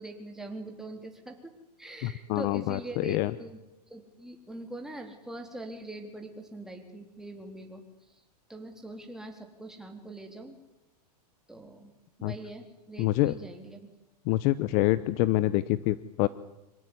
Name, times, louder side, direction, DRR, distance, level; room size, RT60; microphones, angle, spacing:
voice 1, 0.0-3.6 3.9-7.8 8.5-10.6 11.5-11.9 12.2-13.9, right 2 dB, ahead, 3 dB, 3.4 m, -43 dB
voice 2, 2.0-3.3 12.2-12.3 13.0-13.3 14.3-16.3, left 16 dB, 40° left, 16 dB, 0.8 m, -26 dB
26.0 x 16.5 x 9.8 m, 0.97 s
supercardioid pair, 150°, 21 cm